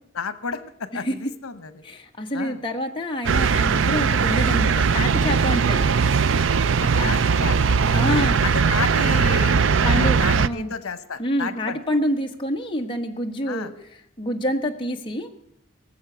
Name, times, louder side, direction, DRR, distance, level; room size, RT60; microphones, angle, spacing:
voice 1, 0.1-1.8 2.3-2.6 6.7-7.7 8.4-11.8 13.5-13.7, left 5 dB, 90° left, 14 dB, 1.0 m, -32 dB
voice 2, 1.8-5.9 6.9-7.3 7.9-8.4 9.8-10.7 11.2-13.7 14.2-15.3, equal, 25° left, 2 dB, 1.4 m, -27 dB
sound 1, 3.2-10.5, right 5 dB, 60° right, 0.5 m, -19 dB
19.0 x 7.3 x 7.9 m, 0.80 s
head